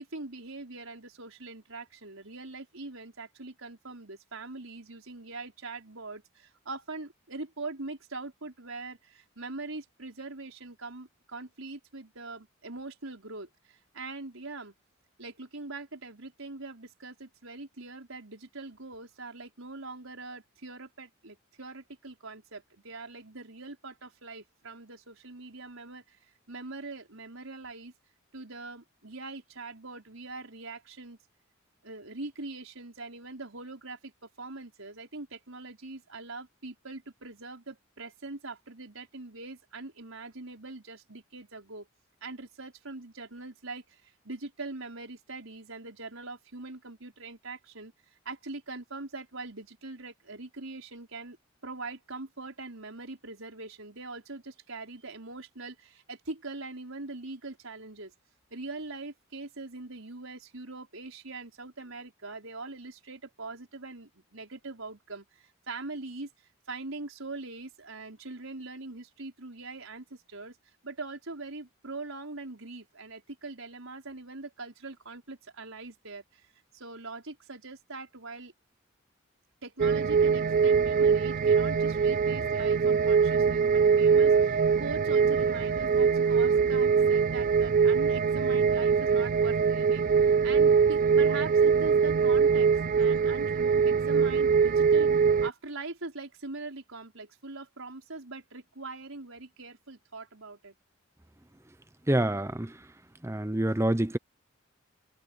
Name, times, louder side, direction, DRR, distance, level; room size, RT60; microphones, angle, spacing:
voice 1, 0.0-14.7 15.2-26.2 26.5-27.9 28.3-31.2 31.8-34.1 34.4-41.9 42.2-47.9 48.2-51.4 51.6-58.1 58.5-66.3 66.7-70.6 70.8-76.5 76.7-78.5 79.6-92.7 93.0-100.7, right 3 dB, 80° right, 4.9 m, -42 dB
sound 1, 79.8-95.5, right 6 dB, 40° right, 0.3 m, -23 dB
voice 2, 102.1-102.7 103.2-104.2, right 1 dB, 15° right, 0.7 m, -26 dB
head